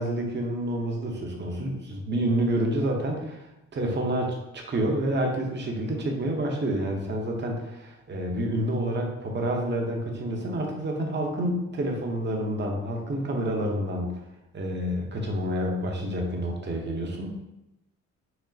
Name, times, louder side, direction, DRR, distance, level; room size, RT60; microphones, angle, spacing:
voice 1, 0.0-3.4 3.7-14.2 14.5-17.3, right 1 dB, 35° right, 1 dB, 0.9 m, -28 dB
5.9 x 2.1 x 2.7 m, 0.90 s
cardioid pair, 90°, 30 cm